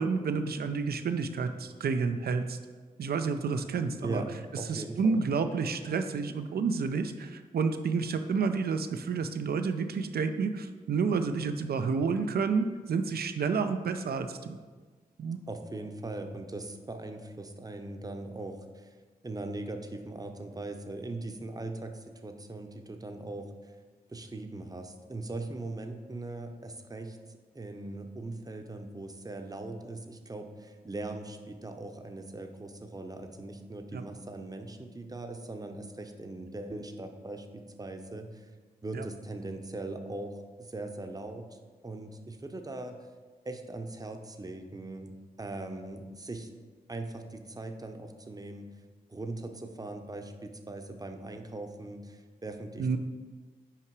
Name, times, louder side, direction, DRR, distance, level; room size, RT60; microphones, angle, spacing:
voice 1, 0.0-2.6 3.0-4.2 4.7-14.6 15.2-15.4 33.9-34.0 38.9-39.0 52.8-53.0, right 5 dB, 70° right, 9 dB, 0.5 m, -30 dB
voice 2, 4.6-5.2 15.5-19.0 19.2-23.5 24.1-38.5 38.8-41.5 41.8-43.0 43.4-46.5 46.9-48.7 49.1-53.0, right 2 dB, 20° right, 5 dB, 0.7 m, -40 dB
5.8 x 4.8 x 4.7 m, 1.4 s
cardioid pair, 45°, 16 cm